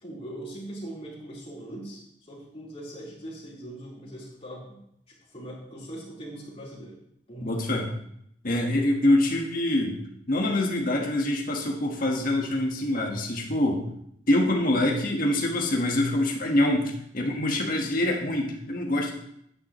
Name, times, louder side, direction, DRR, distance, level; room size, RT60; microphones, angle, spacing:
voice 1, 0.0-2.0 2.3-4.8 5.1-7.0 7.3-7.7, right 1 dB, 35° left, -6 dB, 4.2 m, -40 dB
voice 2, 7.4-7.9 8.4-10.0 10.3-13.8 14.3-19.1, left 1 dB, 50° left, 0 dB, 1.6 m, -25 dB
11.0 x 9.5 x 3.2 m, 0.73 s
head